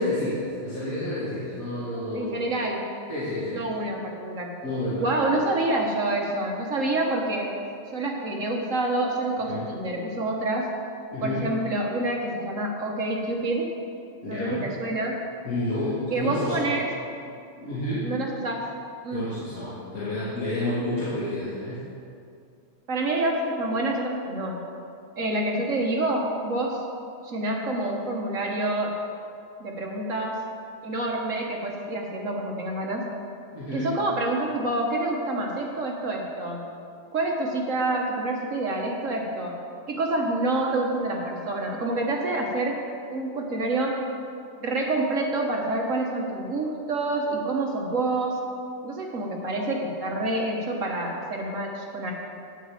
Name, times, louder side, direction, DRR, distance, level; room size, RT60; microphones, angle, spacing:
voice 1, 0.0-2.4 3.1-3.6 4.6-5.2 9.5-9.6 11.1-11.5 14.2-14.7 15.4-16.7 17.6-18.1 19.1-21.8 33.5-33.9, left 1 dB, 40° left, -10 dB, 2.7 m, -30 dB
voice 2, 2.1-2.8 3.5-4.5 5.0-7.5 7.9-10.7 11.2-13.7 14.3-15.2 16.1-16.9 18.0-18.6 19.0-19.3 22.9-24.6 25.2-26.8 27.2-28.9 29.6-30.4 30.8-33.0 33.7-36.6 37.1-39.6 39.9-42.8 43.1-44.0 44.6-48.4 48.8-52.1, right 2 dB, 45° right, 0 dB, 1.2 m, -27 dB
9.4 x 7.3 x 7.3 m, 2.5 s
omnidirectional pair, 2.4 m